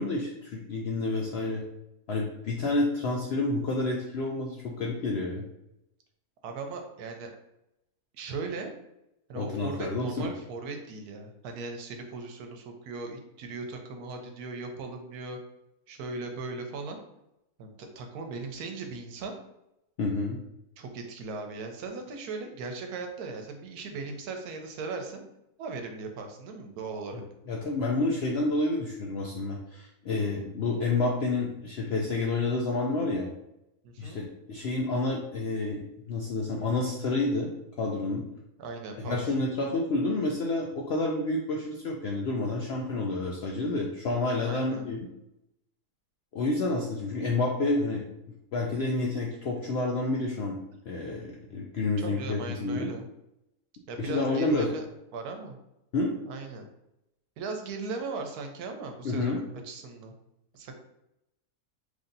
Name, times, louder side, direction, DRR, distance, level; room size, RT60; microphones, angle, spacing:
voice 1, 0.0-1.6 2.1-5.5 9.3-10.3 20.0-20.4 27.1-27.2 27.5-33.3 34.0-37.5 37.8-38.3 39.1-45.1 46.3-48.1 48.5-50.6 50.9-52.9 54.0-54.7 55.9-56.1 59.0-59.4, left 2 dB, 70° left, -1 dB, 0.6 m, -29 dB
voice 2, 6.4-7.3 8.1-8.7 9.3-15.4 15.9-17.0 17.6-19.3 20.8-25.2 25.6-27.2 33.8-34.2 38.6-39.4 44.4-44.9 52.0-53.0 53.9-54.9 55.1-55.6 56.3-56.7 57.4-60.1 60.5-60.8, right 3 dB, 80° right, 4 dB, 1.2 m, -38 dB
3.2 x 2.7 x 3.8 m, 0.85 s
omnidirectional pair, 1.6 m